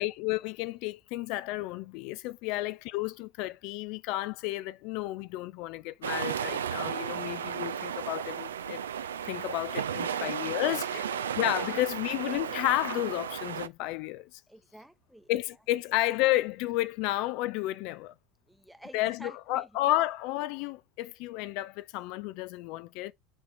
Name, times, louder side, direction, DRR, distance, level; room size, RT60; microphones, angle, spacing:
voice 1, 0.0-8.8 9.2-11.0 11.4-14.4 15.3-18.1 18.9-23.1, left 16 dB, 55° left, 0.4 m, -32 dB
sound 1, 6.0-13.7, right 8 dB, 75° right, 0.4 m, -34 dB
voice 2, 14.5-15.3 18.7-19.7, right 1 dB, ahead, 0.8 m, -50 dB
8.8 x 2.9 x 3.6 m
figure-of-eight pair, 75°, 0 cm